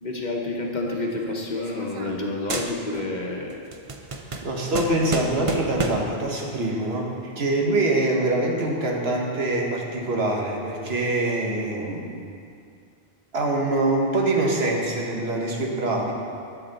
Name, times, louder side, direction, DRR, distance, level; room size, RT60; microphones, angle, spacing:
voice 1, 0.0-3.6, left 2 dB, 45° left, 0 dB, 1.1 m, -29 dB
sound 1, 0.9-2.2 2.5-3.2 3.5-6.2, right 3 dB, 40° right, 0.6 m, -31 dB
voice 2, 4.4-12.1 13.3-16.1, right 2 dB, 75° right, -1 dB, 1.4 m, -24 dB
11.0 x 7.4 x 4.1 m, 2.4 s
omnidirectional pair, 1.1 m